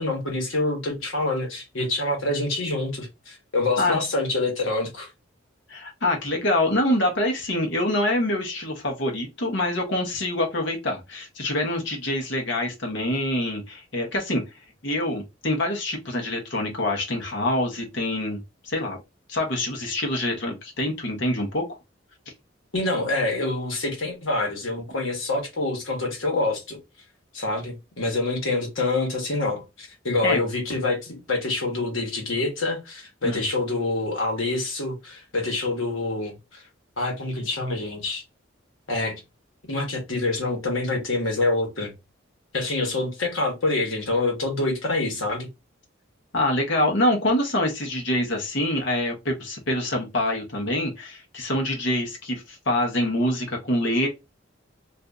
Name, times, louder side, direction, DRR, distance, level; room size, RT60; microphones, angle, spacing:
voice 1, 0.0-5.1 22.7-26.8 27.3-36.6 37.0-38.2 38.9-39.2 39.7-41.9 42.5-45.5, left 2 dB, 80° left, 1.3 m, -26 dB
voice 2, 5.7-14.4 14.8-19.0 19.3-21.8 30.2-30.4 33.2-33.4 46.3-54.1, left 1 dB, 65° left, 1.0 m, -25 dB
2.6 x 2.6 x 3.4 m
head